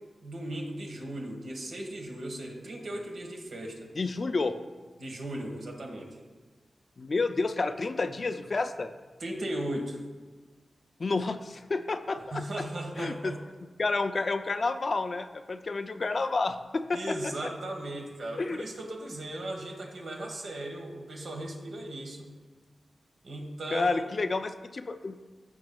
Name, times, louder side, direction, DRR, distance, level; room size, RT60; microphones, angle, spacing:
voice 1, 0.2-3.9 5.0-6.1 9.2-10.0 12.3-13.4 16.9-22.3 23.2-24.1, right 1 dB, 75° right, 1 dB, 1.4 m, -37 dB
voice 2, 4.0-4.5 7.0-8.9 11.0-12.4 13.0-13.3 13.8-17.3 18.4-18.6 23.7-25.2, left 3 dB, 50° left, 9 dB, 0.4 m, -30 dB
15.5 x 5.3 x 2.3 m, 1.4 s
wide cardioid pair, 75°, 0 cm